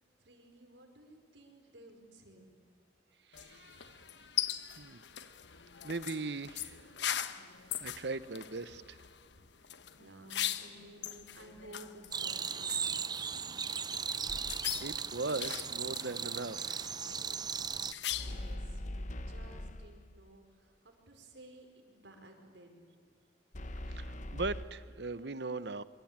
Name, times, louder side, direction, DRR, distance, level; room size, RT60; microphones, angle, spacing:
voice 1, 0.2-2.5 10.0-13.1 18.1-23.2, right 1 dB, 85° right, 4 dB, 5.1 m, -56 dB
sound 1, 3.3-18.5, left 11 dB, 75° left, 1.2 m, -41 dB
voice 2, 3.3-3.9 4.8-5.0 5.8-6.9 7.7-9.0 14.1-14.2 14.8-17.0 23.9-25.8, right 3 dB, 65° right, 15 dB, 1.0 m, -39 dB
sound 2, 12.1-17.9, right 6 dB, 25° right, 0.6 m, -37 dB
sound 3, 14.3-14.9 18.1-20.2 23.5-24.6, left 1 dB, 45° left, 1.0 m, -41 dB
27.0 x 24.0 x 8.9 m, 2.1 s
head